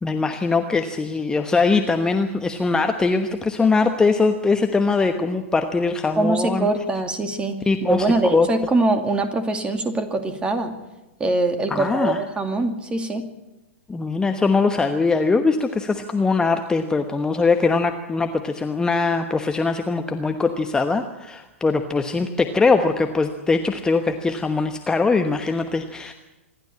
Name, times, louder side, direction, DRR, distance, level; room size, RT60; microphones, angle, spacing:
voice 1, 0.0-6.7 7.7-8.5 11.7-12.2 13.9-26.1, left 4 dB, 10° left, 6 dB, 1.1 m, -21 dB
voice 2, 6.2-10.7 11.2-13.2, right 2 dB, 15° right, 7 dB, 2.4 m, -23 dB
26.0 x 12.0 x 8.7 m, 1.0 s
figure-of-eight pair, 100°, 7 cm